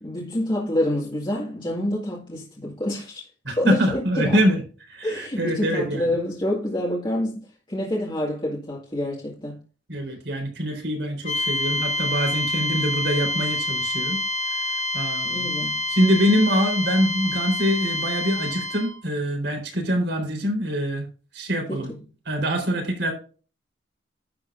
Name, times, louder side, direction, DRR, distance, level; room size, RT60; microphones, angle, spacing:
voice 1, 0.0-3.3 3.6-4.4 5.0-7.4 7.7-9.6 15.2-15.9 21.7-22.0, left 1 dB, 25° left, 2.0 m, -27 dB
voice 2, 3.4-4.6 4.9-6.1 9.9-14.2 14.5-14.6 14.9-15.5 15.9-21.1 21.3-21.9 22.3-23.1, equal, 60° right, 4.0 m, -24 dB
sound 1, 11.3-19.0, left 1 dB, 40° left, 1.1 m, -27 dB
11.5 x 7.9 x 2.6 m
head